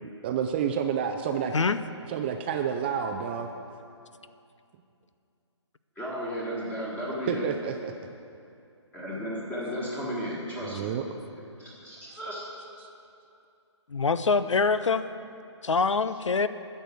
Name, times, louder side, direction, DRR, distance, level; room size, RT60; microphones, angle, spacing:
voice 1, 0.0-1.5 2.1-3.5 7.3-7.9 10.6-11.0 12.8-12.9, right 8 dB, 20° right, 5 dB, 0.4 m, -29 dB
voice 2, 5.9-7.4 8.9-10.9 11.6-12.4, equal, 10° left, -6 dB, 1.7 m, -34 dB
voice 3, 13.9-15.0 15.6-16.5, left 4 dB, 80° left, 13 dB, 0.6 m, -24 dB
11.0 x 6.6 x 7.8 m, 2.5 s
figure-of-eight pair, 140°, 15 cm